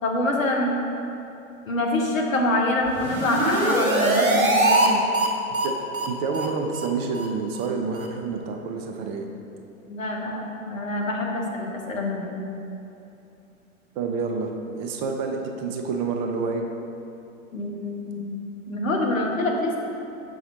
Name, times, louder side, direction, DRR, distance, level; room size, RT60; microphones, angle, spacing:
voice 1, 0.0-0.8 1.6-5.0 9.9-12.4 17.5-18.4 18.7-19.8, left 1 dB, 70° left, 0 dB, 1.1 m, -25 dB
sound 1, 2.8-4.9 5.1-5.3 5.5-5.7 5.9-6.1 6.3-6.5 6.7-6.9 7.1-7.3 7.5-7.7 8.0-8.1, right 2 dB, 80° right, 0.9 m, -22 dB
voice 2, 6.1-9.3 14.0-14.5 14.8-16.6, right 4 dB, 35° right, 3 dB, 0.6 m, -28 dB
7.1 x 5.0 x 3.8 m, 2.9 s
figure-of-eight pair, 95°, 41 cm